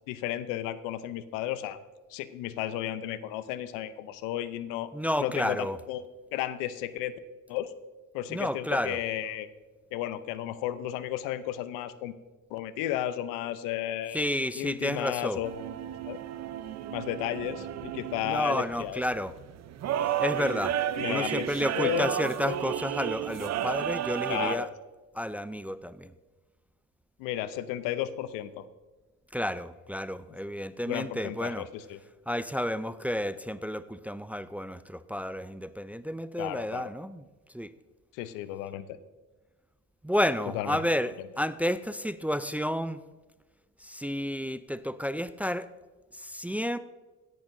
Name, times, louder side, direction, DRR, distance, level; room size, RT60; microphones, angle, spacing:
voice 1, 0.1-1.8 2.1-4.9 5.2-6.0 6.3-7.2 7.5-7.7 8.1-9.5 9.9-12.1 12.5-14.2 14.6-15.6 16.0-16.2 16.9-19.0 21.0-21.5 21.7-22.1 22.5-22.7 24.3-24.7 27.2-28.7 30.9-32.0 36.4-36.9 38.1-39.0 40.5-40.8 41.2-41.3, left 12 dB, 85° left, 14 dB, 0.7 m, -33 dB
voice 2, 4.9-5.8 8.3-9.0 14.1-15.4 18.2-19.3 20.0-20.8 21.0-24.7 25.1-26.1 29.3-31.7 32.3-37.2 37.5-37.7 40.0-43.0 43.8-45.7 46.1-46.8, equal, 5° right, 14 dB, 0.4 m, -31 dB
sound 1, 15.4-24.6, right 10 dB, 55° right, 0.6 m, -33 dB
16.5 x 10.5 x 2.7 m, 1.3 s
supercardioid pair, 75°, 32 cm